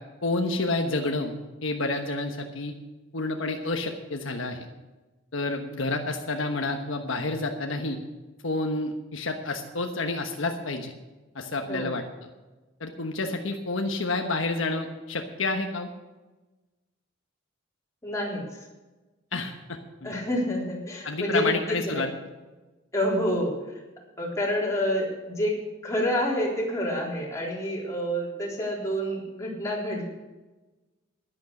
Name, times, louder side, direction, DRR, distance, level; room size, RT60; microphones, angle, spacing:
voice 1, 0.2-1.3 1.6-2.7 3.1-4.6 5.3-8.0 8.4-10.9 11.3-12.0 12.8-15.9 19.3-20.1 21.0-22.1, left 2 dB, 70° left, 4 dB, 1.2 m, -29 dB
voice 2, 18.0-18.4 20.0-22.1 22.9-23.5 24.2-25.5 25.8-30.0, equal, 15° left, -4 dB, 3.6 m, -28 dB
11.0 x 11.0 x 6.6 m, 1.2 s
head